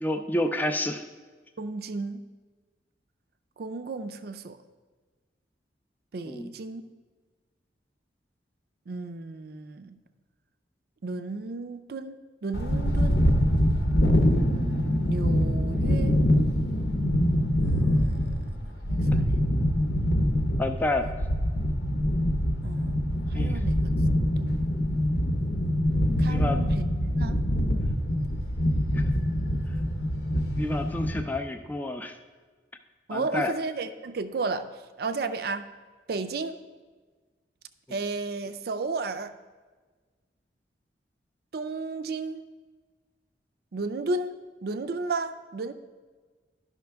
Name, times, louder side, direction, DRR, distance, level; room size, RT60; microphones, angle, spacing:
voice 1, 0.0-1.0 6.3-6.5 20.6-21.1 23.3-23.6 26.3-26.6 28.9-29.1 30.5-32.2 33.1-33.5, left 1 dB, 10° left, 6 dB, 0.3 m, -29 dB
voice 2, 1.6-2.2 3.6-4.6 6.1-6.8 8.9-10.0 11.0-13.3 14.5-16.2 17.6-19.5 22.6-24.6 26.2-27.4 33.1-35.7 36.1-36.6 37.9-39.3 41.5-42.4 43.7-44.4 44.6-45.7, right 3 dB, 60° right, 11 dB, 0.4 m, -34 dB
sound 1, 12.5-31.2, equal, 65° left, 0.8 m, -24 dB
11.5 x 5.7 x 3.4 m, 1.4 s
head